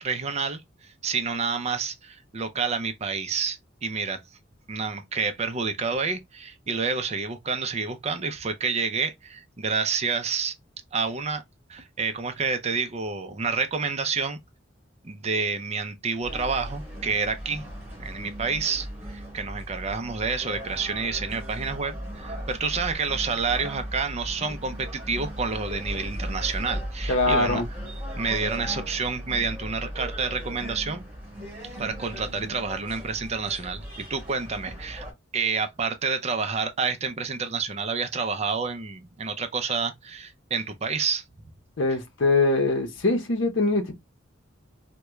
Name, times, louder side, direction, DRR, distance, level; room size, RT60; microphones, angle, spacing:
voice 1, 0.0-4.2 4.7-10.5 10.9-11.4 11.7-14.4 15.0-17.6 18.0-27.6 28.2-31.0 31.8-35.0 35.3-41.2, right 5 dB, 35° right, 0.5 m, -29 dB
sound 1, 16.2-35.1, equal, 10° right, 2.0 m, -37 dB
voice 2, 27.1-27.7 41.8-43.9, left 3 dB, 65° left, 0.7 m, -23 dB
3.4 x 2.2 x 3.0 m
head